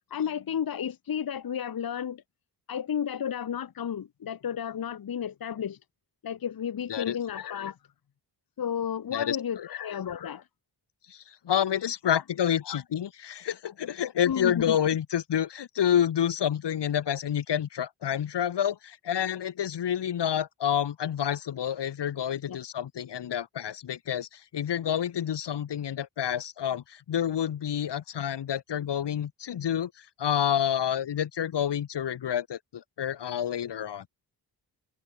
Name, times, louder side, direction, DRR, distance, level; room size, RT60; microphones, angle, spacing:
voice 1, 0.1-2.2 2.7-5.8 6.2-7.8 8.6-10.4 12.1-12.2 12.6-12.8 14.3-14.8 22.5-22.6, left 8 dB, 55° left, 1.1 m, -32 dB
voice 2, 9.1-9.7 11.1-34.1, left 9 dB, 75° left, 1.6 m, -29 dB
cardioid pair, 80°, 42 cm